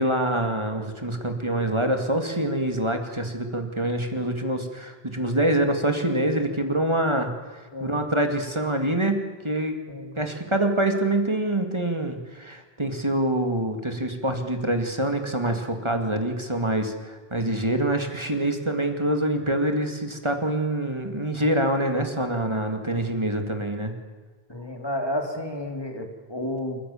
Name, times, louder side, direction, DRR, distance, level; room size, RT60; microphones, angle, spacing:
voice 1, 0.0-7.3 7.8-9.2 9.4-9.8 10.2-23.9, right 1 dB, 30° right, 5 dB, 2.3 m, -25 dB
voice 2, 24.5-26.8, left 1 dB, 25° left, 4 dB, 3.0 m, -31 dB
28.5 x 15.0 x 7.2 m, 1.4 s
omnidirectional pair, 1.0 m